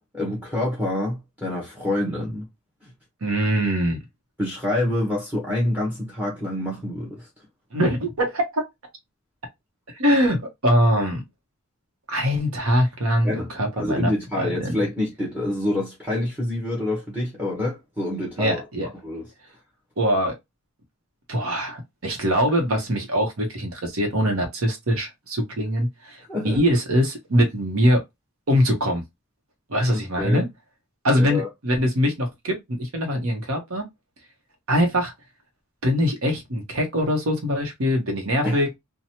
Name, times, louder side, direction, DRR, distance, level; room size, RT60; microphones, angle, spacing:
voice 1, 0.1-2.5 4.4-7.3 13.2-18.6 19.0-19.3 26.3-26.6 30.2-30.4 31.2-31.5 38.4-38.6, left 1 dB, 5° right, 0.9 m, -27 dB
voice 2, 3.2-4.0 7.7-8.6 10.0-11.2 12.1-14.1 14.4-14.7 18.4-18.9 20.0-20.3 21.3-26.2 26.4-28.0 28.5-29.0 29.7-30.5 31.0-33.9 34.7-35.1 35.8-38.7, equal, 70° right, 1.0 m, -22 dB
2.9 x 2.2 x 2.8 m
head